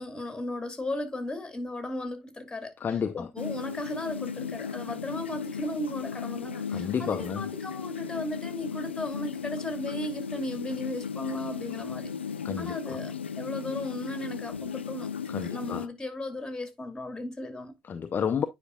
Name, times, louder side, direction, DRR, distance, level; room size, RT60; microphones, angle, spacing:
voice 1, 0.0-2.7 3.2-12.1 12.6-15.1 15.4-17.7, left 1 dB, 10° left, 2.3 m, -36 dB
voice 2, 2.8-3.3 6.7-7.4 12.4-13.0 15.3-15.9 17.9-18.4, left 7 dB, 35° left, 0.6 m, -31 dB
sound 1, 3.4-15.9, left 6 dB, 90° left, 0.4 m, -36 dB
9.8 x 5.2 x 2.3 m
hypercardioid pair, 60°, 6 cm